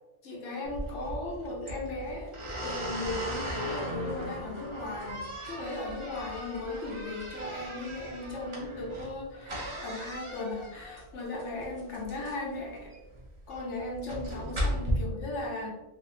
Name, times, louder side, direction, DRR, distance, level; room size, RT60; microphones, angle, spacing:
voice 1, 0.2-12.9 13.5-15.7, left 2 dB, 85° left, 1 dB, 1.1 m, -37 dB
sound 1, 0.6-14.9, equal, 30° right, 0.7 m, -38 dB
2.9 x 2.8 x 3.0 m, 1.0 s
omnidirectional pair, 1.2 m